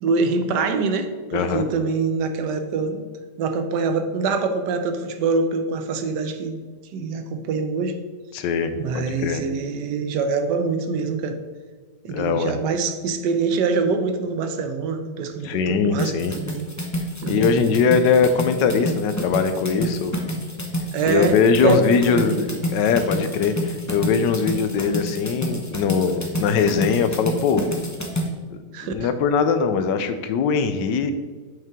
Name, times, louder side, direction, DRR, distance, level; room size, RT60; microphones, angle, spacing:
voice 1, 0.0-3.0 3.4-6.6 6.9-8.0 8.7-11.4 12.0-16.7 17.2-17.6 20.9-21.4 21.6-22.4 28.7-29.1, right 4 dB, 80° right, 8 dB, 1.3 m, -24 dB
voice 2, 1.3-1.6 8.3-9.4 12.1-12.5 15.4-16.3 17.3-20.1 21.1-27.6 28.8-31.1, left 5 dB, 90° left, 9 dB, 1.3 m, -21 dB
sound 1, 16.0-28.3, equal, 25° left, 0.3 m, -28 dB
7.7 x 5.5 x 3.5 m, 1.4 s
omnidirectional pair, 1.9 m